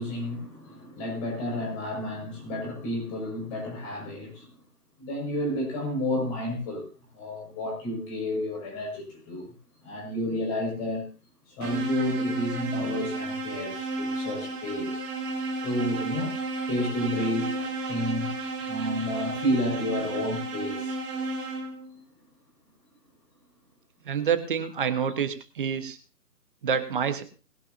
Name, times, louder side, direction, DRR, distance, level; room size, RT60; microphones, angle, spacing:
voice 1, 0.0-4.5 5.0-6.9 7.1-9.5 9.8-11.1 11.6-15.0 15.6-17.5 17.9-21.3, left 1 dB, 20° left, 5.7 m, -31 dB
sound 1, 11.6-22.0, right 2 dB, 15° right, 1.5 m, -32 dB
voice 2, 24.1-26.0 26.6-27.2, right 7 dB, 35° right, 1.4 m, -27 dB
20.5 x 11.0 x 2.8 m
figure-of-eight pair, 150°, 47 cm